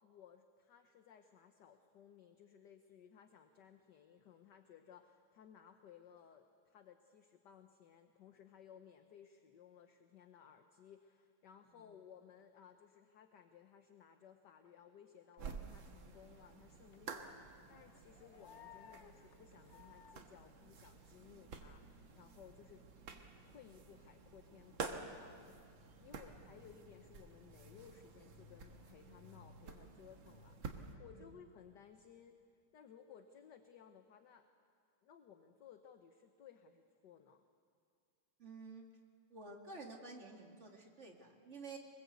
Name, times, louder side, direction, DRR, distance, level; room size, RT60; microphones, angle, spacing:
voice 1, 0.0-32.4 32.7-34.5 35.0-37.4, left 8 dB, 60° left, 7 dB, 1.4 m, -60 dB
sound 1, 14.6-15.5 16.0-20.2, left 9 dB, 85° left, 0.6 m, -61 dB
sound 2, 15.4-31.0, right 4 dB, 65° right, 2.2 m, -51 dB
sound 3, 18.6-25.5, right 3 dB, ahead, 2.8 m, -70 dB
voice 2, 38.4-38.9 39.3-41.8, right 3 dB, 35° right, 1 dB, 2.5 m, -51 dB
24.5 x 21.0 x 8.2 m, 2.3 s
omnidirectional pair, 2.3 m